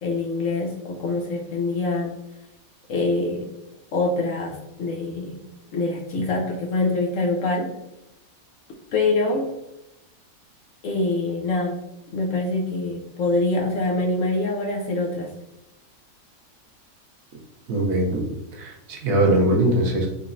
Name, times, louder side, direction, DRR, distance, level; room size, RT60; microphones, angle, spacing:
voice 1, 0.0-2.1 2.9-3.5 3.9-5.4 5.7-7.7 8.9-9.5 10.8-11.8 12.1-15.3, left 2 dB, 70° left, -1 dB, 0.9 m, -24 dB
voice 2, 17.7-20.1, right 1 dB, 70° right, 1 dB, 1.1 m, -21 dB
3.9 x 3.1 x 2.5 m, 0.90 s
omnidirectional pair, 1.5 m